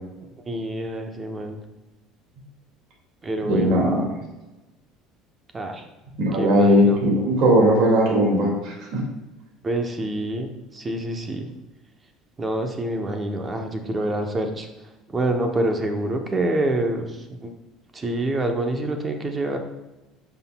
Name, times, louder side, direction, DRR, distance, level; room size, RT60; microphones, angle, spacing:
voice 1, 0.5-1.6 3.2-4.0 5.5-5.9 6.4-7.0 9.6-11.5 12.4-14.7 15.1-17.5 17.9-19.6, right 1 dB, 15° right, 5 dB, 0.7 m, -27 dB
voice 2, 3.5-4.0 6.2-9.0, equal, 50° right, -1 dB, 2.0 m, -18 dB
9.5 x 5.9 x 2.2 m, 1.1 s
cardioid pair, 170°, 0 cm